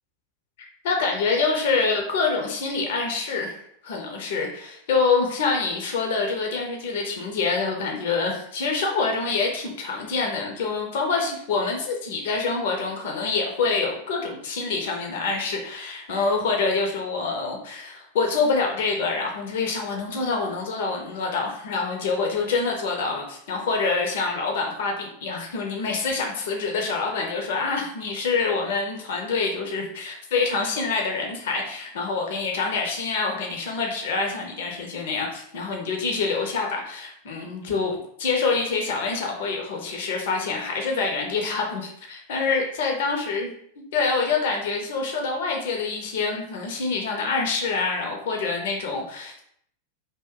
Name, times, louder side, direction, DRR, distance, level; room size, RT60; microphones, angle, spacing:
voice 1, 0.8-43.5 43.9-49.4, left 4 dB, 55° left, 1 dB, 0.7 m, -26 dB
2.6 x 2.2 x 3.6 m, 0.68 s
figure-of-eight pair, 90°, 0 cm